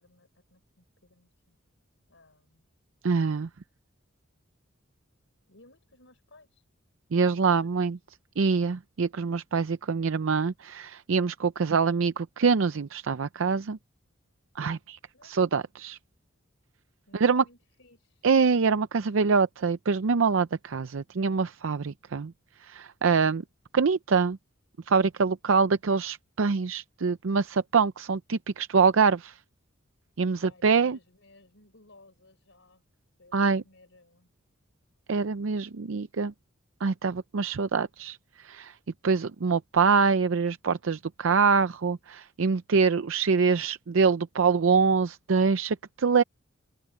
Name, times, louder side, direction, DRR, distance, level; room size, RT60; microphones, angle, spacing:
voice 1, 0.0-1.6 2.1-2.7 5.5-6.6 7.1-7.9 15.1-15.5 17.1-18.3 30.3-32.9 33.2-34.3, left 2 dB, 65° left, 6.1 m, -58 dB
voice 2, 3.0-3.5 7.1-8.0 8.4-13.8 14.6-16.0 17.1-17.4 18.2-22.3 22.6-23.4 23.7-24.4 24.9-29.4 30.2-31.0 33.3-33.6 35.1-36.3 36.8-38.7 39.0-46.2, right 5 dB, 70° right, 0.5 m, -25 dB
open air
head